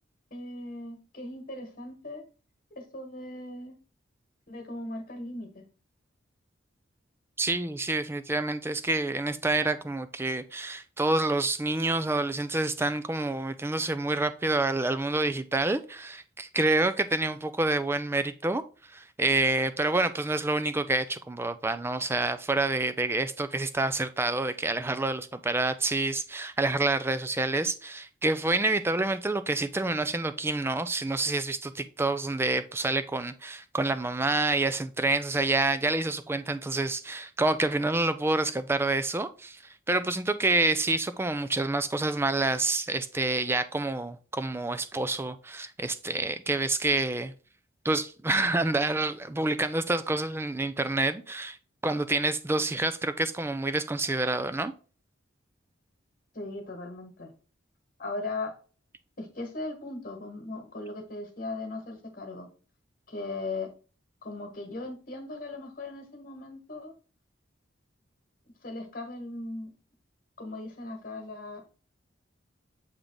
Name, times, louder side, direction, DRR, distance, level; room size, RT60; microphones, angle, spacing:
voice 1, 0.3-2.2 2.7-3.8 4.5-5.7 56.3-57.3 58.0-58.5 59.2-62.5 63.1-63.7 64.2-66.9 68.6-69.7 70.4-71.6, left 2 dB, 45° left, 1.5 m, -38 dB
voice 2, 7.4-18.6 18.9-47.3 47.8-51.6 51.8-54.7, right 2 dB, 10° right, 0.4 m, -28 dB
7.2 x 3.4 x 3.9 m
head